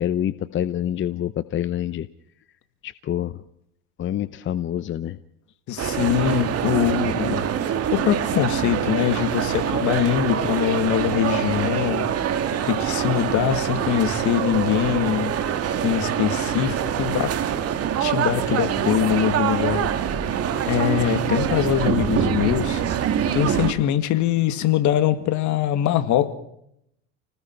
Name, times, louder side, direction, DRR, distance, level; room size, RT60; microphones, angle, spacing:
voice 1, 0.0-2.1 2.8-3.4 4.0-5.2, left 11 dB, 35° left, 0.8 m, -26 dB
voice 2, 5.7-12.1 12.7-15.4 15.8-17.4 18.0-19.9 20.7-22.8 23.3-26.3, left 11 dB, 55° left, 2.2 m, -23 dB
sound 1, 5.8-23.7, right 9 dB, 45° right, 2.3 m, -24 dB
30.0 x 19.5 x 4.7 m
supercardioid pair, 110°, 34 cm